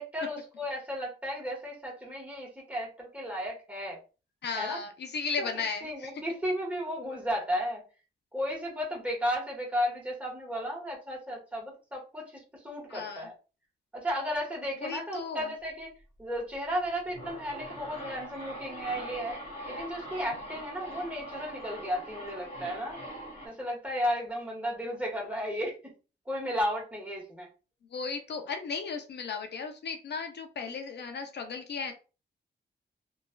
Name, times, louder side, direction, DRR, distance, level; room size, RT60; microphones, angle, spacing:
voice 1, 0.0-4.0 4.5-4.8 5.4-7.8 8.3-13.3 13.9-15.9 16.2-19.4 19.7-23.0 23.4-25.9 26.2-27.5, equal, 5° right, -3 dB, 1.3 m, -34 dB
voice 2, 4.4-6.1 12.9-13.2 14.8-15.4 27.9-31.9, left 5 dB, 70° left, 6 dB, 0.5 m, -35 dB
sound 1, 16.9-23.5, equal, 35° left, 1.3 m, -42 dB
3.1 x 2.3 x 2.2 m, 0.33 s
wide cardioid pair, 95°, 18 cm